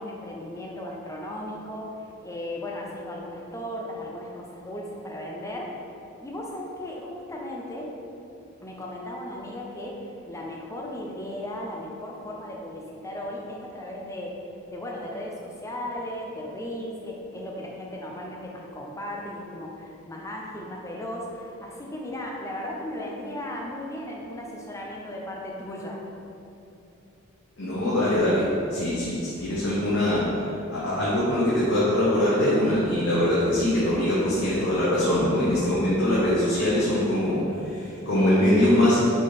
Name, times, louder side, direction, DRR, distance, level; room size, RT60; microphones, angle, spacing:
voice 1, 0.0-5.8 6.2-7.9 8.6-14.4 14.7-26.0, left 1 dB, 15° left, -2 dB, 0.7 m, -36 dB
voice 2, 27.6-30.3 30.7-39.0, left 1 dB, 60° left, -9 dB, 1.2 m, -23 dB
6.3 x 3.9 x 4.1 m, 2.8 s
head